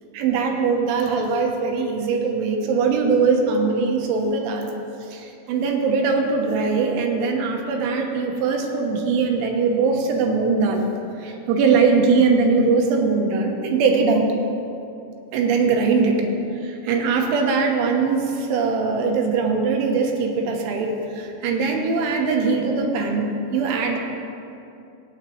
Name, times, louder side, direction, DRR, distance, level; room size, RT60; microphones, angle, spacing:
voice 1, 0.1-4.7 5.1-10.8 11.2-14.3 15.3-16.3 16.6-24.0, right 4 dB, 75° right, 2 dB, 3.1 m, -21 dB
15.5 x 8.8 x 3.2 m, 2.7 s
omnidirectional pair, 5.9 m